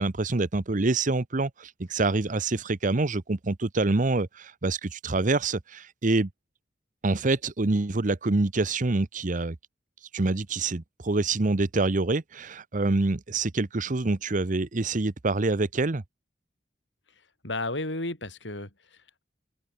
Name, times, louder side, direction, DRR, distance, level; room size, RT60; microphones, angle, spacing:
voice 1, 0.0-6.3 7.0-9.6 10.1-16.0, right 3 dB, 45° right, 0.9 m, -26 dB
voice 2, 17.4-19.2, left 2 dB, 90° left, 6.9 m, -33 dB
open air
head